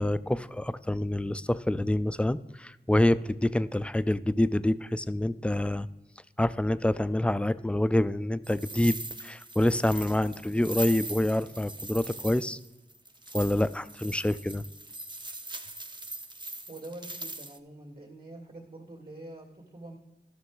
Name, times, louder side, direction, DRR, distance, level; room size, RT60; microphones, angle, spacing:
voice 1, 0.0-5.9 6.4-12.6 13.3-14.6, left 1 dB, 5° left, 15 dB, 0.4 m, -27 dB
sound 1, 8.4-17.6, right 2 dB, 25° right, 0.7 m, -41 dB
voice 2, 16.7-20.0, right 2 dB, 50° right, 0 dB, 2.2 m, -45 dB
13.0 x 6.1 x 3.9 m, 1.0 s
cardioid pair, 50°, 19 cm